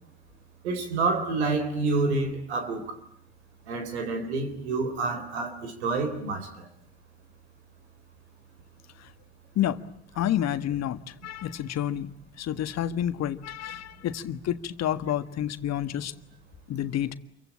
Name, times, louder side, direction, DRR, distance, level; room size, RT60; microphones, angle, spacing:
voice 1, 0.6-2.9 3.7-6.7, right 3 dB, 85° right, 4.0 m, -28 dB
voice 2, 10.1-12.1 12.4-16.1 16.7-17.2, left 11 dB, 55° left, 1.6 m, -29 dB
28.0 x 23.5 x 8.7 m
hypercardioid pair, 60°, 32 cm